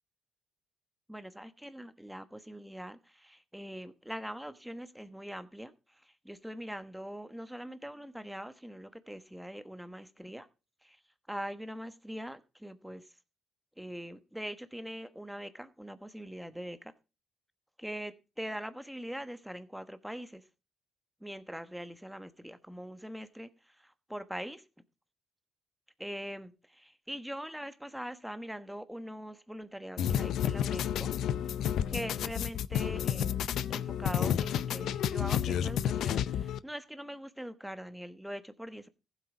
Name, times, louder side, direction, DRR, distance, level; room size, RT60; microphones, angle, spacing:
voice 1, 1.1-5.7 6.0-10.5 10.8-11.0 11.3-13.0 13.8-16.9 17.8-20.4 21.2-24.6 26.0-31.1 31.9-33.4 33.7-38.9, equal, 5° right, 11 dB, 1.2 m, -42 dB
sound 1, 30.0-36.6, left 10 dB, 75° left, 0.5 m, -31 dB
15.0 x 8.1 x 4.9 m, 0.31 s
cardioid pair, 90°, 0 cm